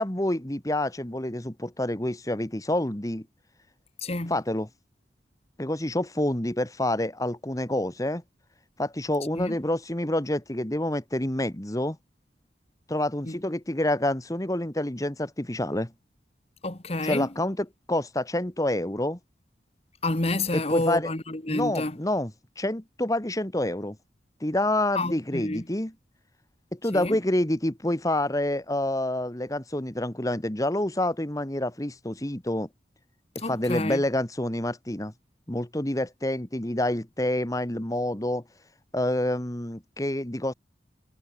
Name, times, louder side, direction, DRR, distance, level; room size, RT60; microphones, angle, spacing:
voice 1, 0.0-3.2 4.3-4.7 5.6-8.2 8.8-12.0 12.9-15.9 17.0-19.2 20.5-21.1 21.5-22.3 22.6-24.0 24.4-25.9 26.7-32.7 33.5-35.1 35.5-38.4 38.9-40.5, left 1 dB, 20° left, 1.7 m, -28 dB
voice 2, 4.0-4.4 9.3-9.6 13.2-13.4 16.6-17.3 20.0-22.0 24.9-25.6 26.9-27.2 33.4-34.0, left 2 dB, 35° left, 1.7 m, -29 dB
head